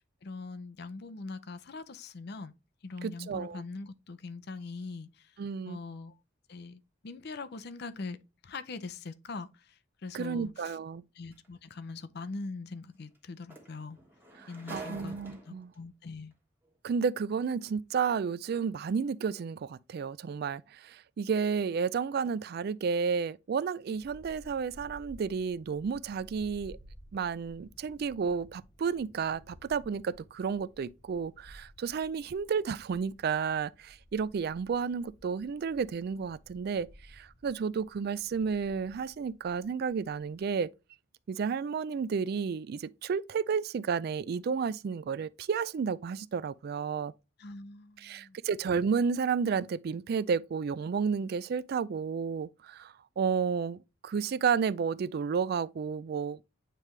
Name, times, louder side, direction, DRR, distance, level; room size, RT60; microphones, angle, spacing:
voice 1, 0.2-2.5 2.8-5.4 5.7-6.2 6.5-8.2 8.4-10.8 11.2-14.0 14.5-15.2 15.5-16.3 47.4-48.4, left 3 dB, 60° left, 0.6 m, -42 dB
voice 2, 3.0-3.6 5.4-5.8 10.1-11.0 14.7-15.7 16.8-26.8 27.1-40.7 41.3-47.1 48.0-56.4, right 6 dB, 55° right, 0.3 m, -32 dB
sound 1, 11.3-11.5 13.1-13.2 13.5-15.7 16.7-16.8, right 2 dB, 10° right, 1.4 m, -47 dB
sound 2, 23.9-40.6, equal, 20° left, 1.1 m, -56 dB
9.1 x 3.3 x 3.2 m
head